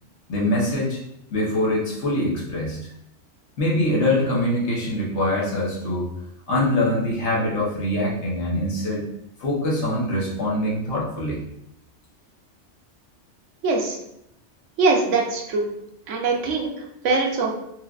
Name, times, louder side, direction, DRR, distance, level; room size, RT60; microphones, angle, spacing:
voice 1, 0.3-1.0 1.3-2.8 3.6-6.0 6.5-9.0 9.4-11.4, left 1 dB, 70° left, -4 dB, 1.2 m, -23 dB
voice 2, 13.6-14.0 14.8-15.6 16.1-17.5, right 3 dB, 85° right, 1 dB, 1.0 m, -22 dB
4.4 x 2.3 x 2.4 m, 0.79 s
omnidirectional pair, 1.2 m